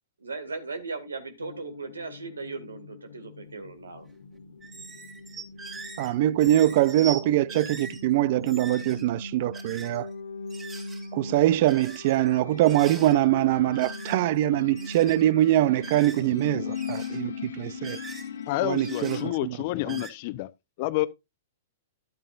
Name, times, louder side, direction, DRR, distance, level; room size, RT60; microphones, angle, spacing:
voice 1, 0.2-4.1, right 3 dB, 85° right, 2.1 m, -37 dB
sound 1, 1.4-19.3, left 4 dB, 75° left, 1.1 m, -39 dB
sound 2, 4.6-6.1 6.4-7.2 7.5-8.0 8.4-9.0 9.5-10.0 10.5-11.1 11.7-12.3 12.6-13.2 13.7-14.4 14.6-15.2 15.8-16.4 16.7-17.2 17.8-18.4 18.7-19.2 19.8-20.1, right 4 dB, 20° right, 3.3 m, -42 dB
voice 2, 6.0-10.1 11.1-18.0 18.6-19.6 19.9-20.0, right 14 dB, 55° right, 0.5 m, -23 dB
voice 3, 18.5-20.5 20.8-21.1, left 18 dB, 50° left, 0.8 m, -29 dB
12.0 x 8.9 x 2.5 m
hypercardioid pair, 110°, 0 cm